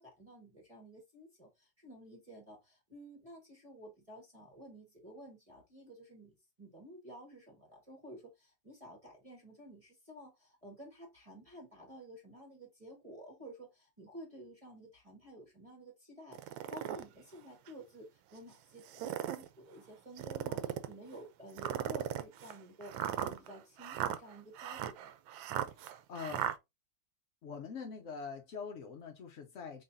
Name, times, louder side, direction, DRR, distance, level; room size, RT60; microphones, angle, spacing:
voice 1, 0.0-25.1, right 1 dB, 20° right, 1.3 m, -52 dB
sound 1, 16.3-17.0 17.7-17.8 18.8-19.5 20.2-20.9 21.6-26.6, right 11 dB, 85° right, 1.3 m, -37 dB
voice 2, 25.8-26.5 27.4-29.8, left 5 dB, 65° left, 0.7 m, -44 dB
5.4 x 3.2 x 2.6 m
omnidirectional pair, 2.1 m